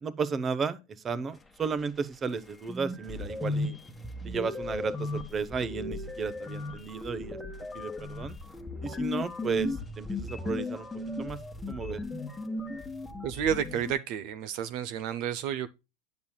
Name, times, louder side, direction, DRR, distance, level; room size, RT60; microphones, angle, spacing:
voice 1, 0.0-3.8 4.2-7.4 7.7-8.4 8.8-10.9 11.2-11.4 11.7-12.0, right 5 dB, 25° right, 0.7 m, -33 dB
sound 1, 2.3-2.4 2.7-13.9, left 2 dB, 10° left, 1.3 m, -36 dB
voice 2, 13.2-15.7, right 9 dB, 55° right, 0.5 m, -31 dB
9.4 x 7.2 x 2.2 m
supercardioid pair, 125°, 0 cm